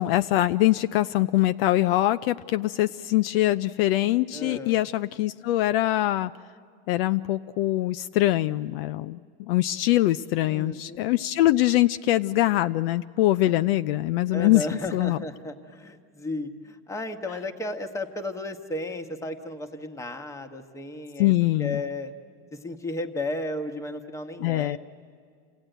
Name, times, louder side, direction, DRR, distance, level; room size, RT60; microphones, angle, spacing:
voice 1, 0.0-6.3 6.9-9.2 9.5-15.2 21.2-21.8 24.4-24.8, left 15 dB, 60° left, 11 dB, 0.5 m, -23 dB
voice 2, 4.3-4.9 10.5-11.1 14.3-21.3 21.6-22.1 22.5-24.8, left 2 dB, 10° left, 5 dB, 1.2 m, -34 dB
29.0 x 16.0 x 9.1 m, 2.2 s
supercardioid pair, 135°, 32 cm